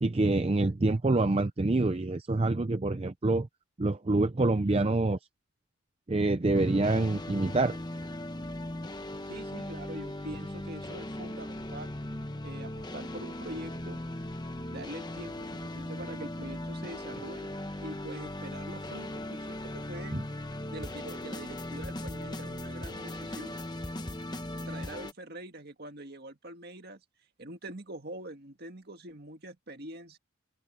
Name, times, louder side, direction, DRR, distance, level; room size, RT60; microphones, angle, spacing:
voice 1, 0.0-3.5 3.8-5.2 6.1-7.8 20.1-20.2, right 2 dB, 30° right, 0.5 m, -26 dB
sound 1, 6.5-25.1, left 1 dB, 20° left, 1.1 m, -38 dB
voice 2, 9.3-12.0 12.4-14.0 14.7-23.7 24.7-27.0 27.4-30.2, right 1 dB, 50° right, 2.0 m, -44 dB
head